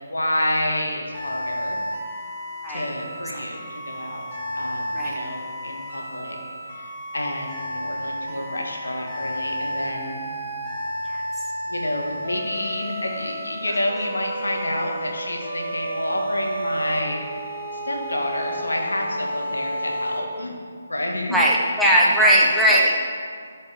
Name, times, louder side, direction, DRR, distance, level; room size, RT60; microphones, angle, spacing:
voice 1, 0.1-1.8 2.7-4.2 4.6-6.4 6.6-10.2 11.7-20.5 20.9-21.4 21.9-22.4, left 1 dB, 80° left, 0 dB, 1.8 m, -29 dB
sound 1, 1.1-20.2, equal, 35° left, 2.6 m, -32 dB
voice 2, 21.3-23.0, equal, ahead, -6 dB, 1.0 m, -18 dB
13.0 x 6.7 x 3.7 m, 2.1 s
figure-of-eight pair, 145°, 0 cm